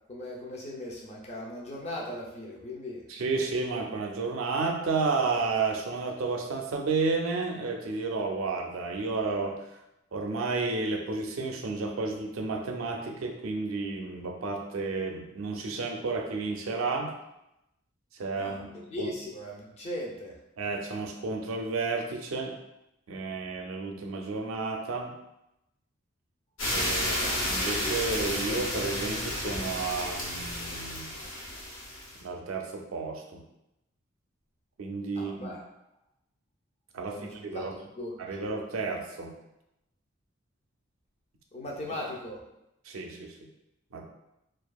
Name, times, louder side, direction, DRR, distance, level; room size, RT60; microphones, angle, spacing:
voice 1, 0.1-3.0 18.3-20.4 35.2-35.6 37.0-38.4 41.5-42.4, left 1 dB, 30° left, -2 dB, 0.4 m, -39 dB
voice 2, 3.1-9.5 10.1-17.1 18.1-18.7 19.0-19.1 20.6-22.6 23.1-25.1 26.7-31.1 32.2-33.4 34.8-35.5 36.9-37.7 38.2-39.4 42.8-43.4 43.9-44.0, right 4 dB, 80° right, 2 dB, 0.4 m, -32 dB
sound 1, 26.6-32.2, left 1 dB, 70° left, 0.7 m, -31 dB
2.6 x 2.3 x 2.3 m, 0.87 s
head